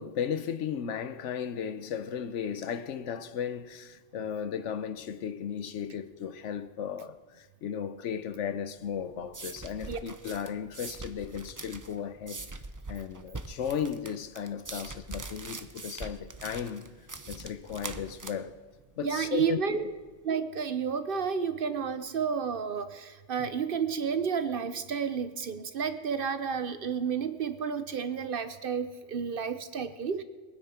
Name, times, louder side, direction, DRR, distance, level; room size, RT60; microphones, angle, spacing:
voice 1, 0.0-12.4 12.9-16.9 17.3-18.6 19.0-19.8 23.4-23.5, left 8 dB, 80° left, 1.1 m, -35 dB
sound 1, 8.8-20.2, right 3 dB, 25° right, 0.4 m, -43 dB
voice 2, 19.0-19.9 20.2-30.2, right 6 dB, 55° right, 0.9 m, -31 dB
23.0 x 9.6 x 4.4 m
omnidirectional pair, 1.2 m